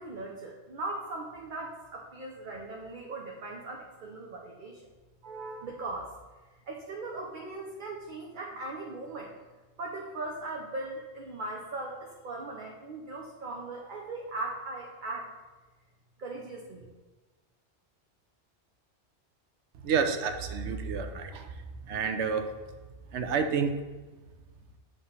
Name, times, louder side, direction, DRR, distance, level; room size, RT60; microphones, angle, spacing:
voice 1, 0.0-4.8 5.2-6.1 6.7-9.3 9.8-15.3 16.2-16.9, right 2 dB, 50° right, -1 dB, 0.9 m, -39 dB
voice 2, 19.8-21.5 21.9-22.4 23.1-23.8, right 6 dB, 80° right, 6 dB, 1.0 m, -29 dB
7.6 x 3.3 x 5.7 m, 1.2 s
omnidirectional pair, 1.2 m